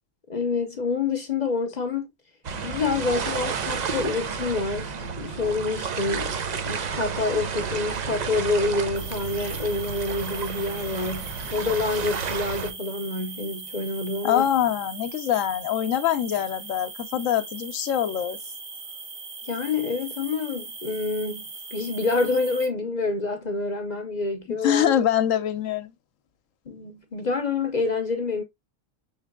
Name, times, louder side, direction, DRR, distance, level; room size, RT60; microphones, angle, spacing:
voice 1, 0.3-2.1 2.6-6.4 6.6-14.4 19.4-21.4 21.7-25.1 26.7-28.4, left 3 dB, 40° left, 0.7 m, -27 dB
sound 1, 2.4-12.7, right 6 dB, 55° right, 0.5 m, -31 dB
sound 2, 8.9-22.7, right 4 dB, 90° right, 1.8 m, -39 dB
voice 2, 14.2-18.4 24.6-25.9, left 10 dB, 85° left, 1.1 m, -24 dB
6.1 x 3.3 x 2.2 m
omnidirectional pair, 1.3 m